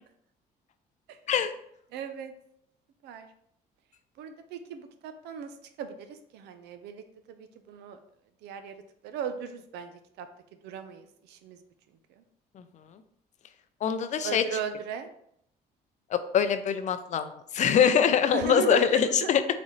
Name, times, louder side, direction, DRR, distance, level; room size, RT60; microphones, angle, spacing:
voice 1, 1.9-2.3 3.0-3.3 4.2-8.0 8.4-8.8 9.0-10.3 10.6-11.6 12.2-12.3 14.2-15.1 18.3-19.5, right 7 dB, 85° right, 9 dB, 0.6 m, -37 dB
voice 2, 13.8-14.4 16.1-19.4, left 8 dB, 45° left, 10 dB, 0.4 m, -23 dB
4.2 x 3.9 x 3.1 m, 0.71 s
cardioid pair, 110°, 17 cm